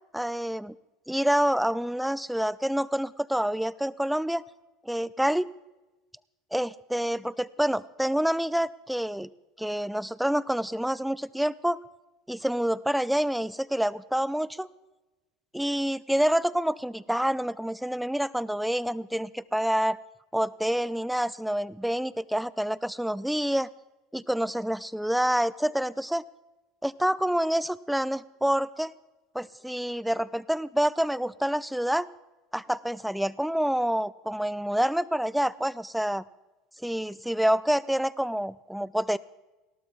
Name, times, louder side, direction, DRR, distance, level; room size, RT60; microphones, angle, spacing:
voice 1, 0.1-0.8 1.1-4.4 4.8-5.5 6.5-9.3 9.6-11.8 12.3-14.7 15.5-20.0 20.3-23.7 24.1-26.2 26.8-28.9 29.3-32.1 32.5-36.2 36.8-39.2, equal, ahead, 19 dB, 0.5 m, -27 dB
18.0 x 12.5 x 3.6 m, 1.1 s
hypercardioid pair, 85°, 0 cm